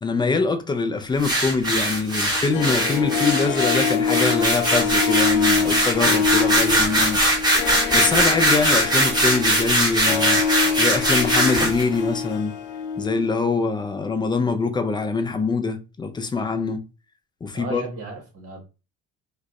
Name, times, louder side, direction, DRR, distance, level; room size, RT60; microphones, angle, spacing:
voice 1, 0.0-7.2 7.6-10.4 10.8-12.6 13.0-16.8 17.4-17.8, left 4 dB, 15° left, 0.3 m, -24 dB
sound 1, 1.2-11.9, right 1 dB, 10° right, 1.1 m, -21 dB
Harp, 2.3-13.4 13.6-13.7, left 6 dB, 70° left, 0.5 m, -25 dB
voice 2, 17.5-18.6, right 4 dB, 40° right, 1.4 m, -34 dB
2.4 x 2.3 x 2.3 m
hypercardioid pair, 70°, 36 cm